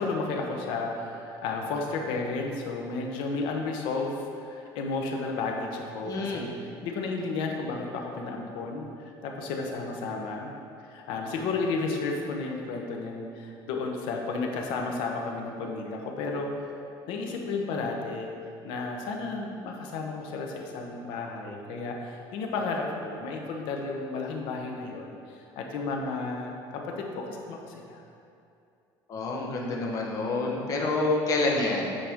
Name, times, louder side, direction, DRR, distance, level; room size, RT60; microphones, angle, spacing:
voice 1, 0.0-8.9 9.2-10.5 10.9-16.7 17.1-18.3 18.6-28.0, left 3 dB, 80° left, 1 dB, 1.0 m, -32 dB
voice 2, 6.0-6.5 29.1-32.0, left 2 dB, 45° left, -1 dB, 1.1 m, -28 dB
8.8 x 5.0 x 3.7 m, 2.5 s
cardioid pair, 150°, 8 cm